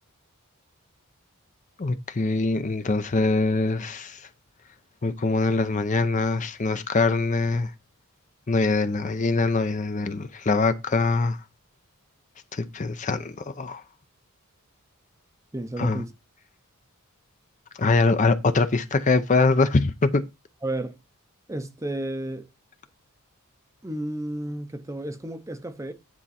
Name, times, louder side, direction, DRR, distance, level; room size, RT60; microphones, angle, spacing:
voice 1, 1.8-4.3 5.0-7.7 8.5-11.4 12.5-13.8 15.8-16.0 17.8-20.2, left 3 dB, 35° left, 0.6 m, -23 dB
voice 2, 15.5-16.1 20.6-21.0 21.5-22.5 23.8-25.9, right 1 dB, 15° right, 0.7 m, -32 dB
9.9 x 4.4 x 4.2 m
head